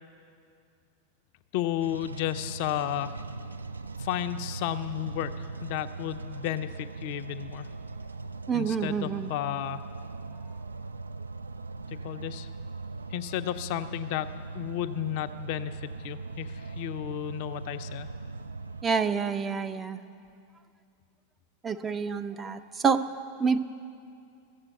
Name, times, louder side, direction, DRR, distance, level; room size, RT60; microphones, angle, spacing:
voice 1, 1.5-3.1 4.0-7.7 8.5-9.8 11.9-12.5 13.1-18.1, left 13 dB, 45° left, 10 dB, 0.4 m, -33 dB
sound 1, 1.8-18.8, right 3 dB, 75° right, 0.3 m, -40 dB
voice 2, 8.5-9.3 18.8-20.0 21.6-23.0 23.4-23.6, right 6 dB, 20° right, 8 dB, 0.5 m, -27 dB
14.5 x 7.4 x 7.9 m, 2.4 s
figure-of-eight pair, 90°, 0 cm